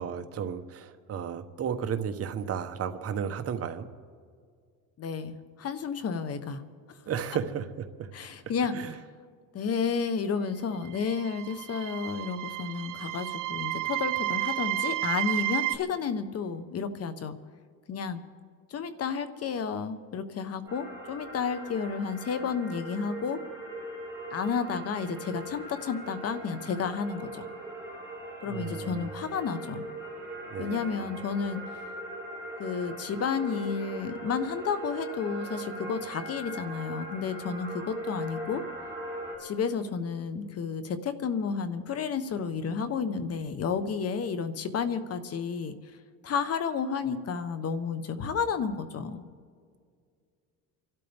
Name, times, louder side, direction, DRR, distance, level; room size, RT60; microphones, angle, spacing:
voice 1, 0.0-3.9 7.1-8.1 8.7-8.9 28.4-29.1 30.5-31.2, right 7 dB, 40° right, 8 dB, 1.1 m, -34 dB
voice 2, 5.0-6.6 8.1-8.7 9.5-17.4 17.9-18.2 18.7-23.4 24.3-27.4 28.4-29.8 30.6-31.6 32.6-38.6 39.4-45.7 46.2-49.2, left 6 dB, 40° left, 11 dB, 1.1 m, -31 dB
sound 1, 10.9-15.8, right 17 dB, 60° right, 0.8 m, -32 dB
sound 2, 20.7-39.3, right 1 dB, 10° right, 5.5 m, -40 dB
28.5 x 12.5 x 3.5 m, 2.1 s
cardioid pair, 120°, 36 cm